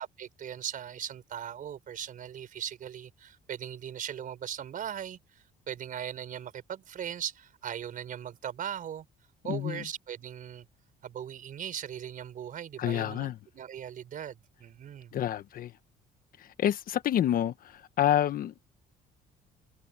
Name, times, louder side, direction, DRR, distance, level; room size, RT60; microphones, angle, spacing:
voice 1, 0.0-9.1 9.4-10.7 11.0-15.1, right 9 dB, 55° right, 5.1 m, -39 dB
voice 2, 9.5-9.9 12.8-13.4 15.1-15.7 16.4-18.5, left 11 dB, 60° left, 1.2 m, -28 dB
cardioid pair, 110°, 17 cm